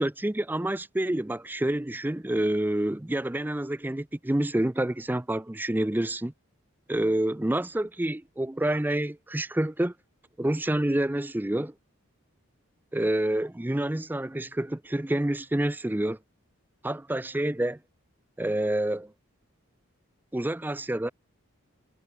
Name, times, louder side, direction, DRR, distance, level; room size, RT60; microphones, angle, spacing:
voice 1, 0.0-6.3 6.9-9.9 10.4-11.7 12.9-16.2 16.8-17.8 18.4-19.1 20.3-21.1, right 1 dB, 10° right, 0.4 m, -28 dB
head